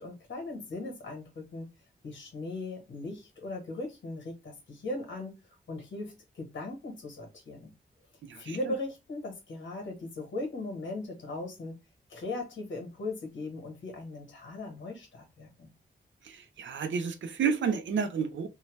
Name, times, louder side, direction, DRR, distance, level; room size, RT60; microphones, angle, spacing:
voice 1, 0.0-1.7 2.0-5.3 5.7-7.7 8.4-11.7 12.1-15.7, left 2 dB, 85° left, 1.1 m, -38 dB
voice 2, 16.6-18.5, right 6 dB, 80° right, 0.5 m, -30 dB
2.7 x 2.1 x 3.0 m
wide cardioid pair, 160°, 19 cm